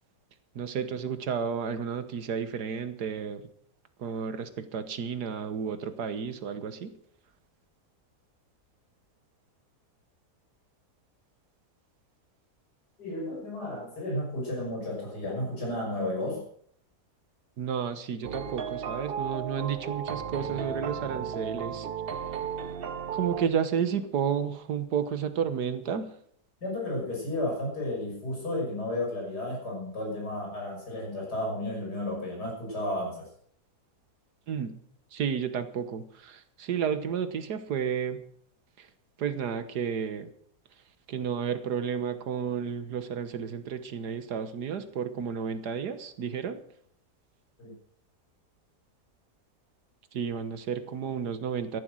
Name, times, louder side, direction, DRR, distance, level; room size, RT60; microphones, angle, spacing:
voice 1, 0.6-3.4 4.0-7.0 17.6-21.9 23.1-26.1 34.5-34.8 35.1-38.2 38.8-38.9 39.2-40.3 41.1-46.6 50.1-51.8, right 7 dB, 80° right, 11 dB, 1.8 m, -32 dB
voice 2, 13.0-16.4 26.6-33.3 47.6-47.7, left 1 dB, 85° left, -2 dB, 6.9 m, -33 dB
sound 1, 18.2-23.5, right 7 dB, 45° right, 0.8 m, -35 dB
13.5 x 11.5 x 6.3 m, 0.63 s
omnidirectional pair, 1.7 m